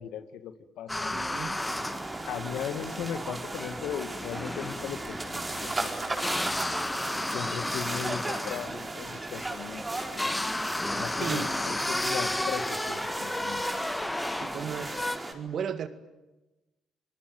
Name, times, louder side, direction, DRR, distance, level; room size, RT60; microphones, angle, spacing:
voice 1, 0.0-1.1 2.2-6.4 7.3-10.4 10.9-13.6, left 9 dB, 75° left, 11 dB, 1.7 m, -38 dB
sound 1, 0.9-15.2, left 1 dB, 15° left, 1.4 m, -34 dB
voice 2, 1.1-1.6 11.2-11.7 14.4-15.9, right 7 dB, 60° right, 11 dB, 1.9 m, -36 dB
sound 2, 1.5-15.3, right 2 dB, 25° right, 4.5 m, -36 dB
27.5 x 20.5 x 9.3 m, 1.1 s
supercardioid pair, 55°, 0 cm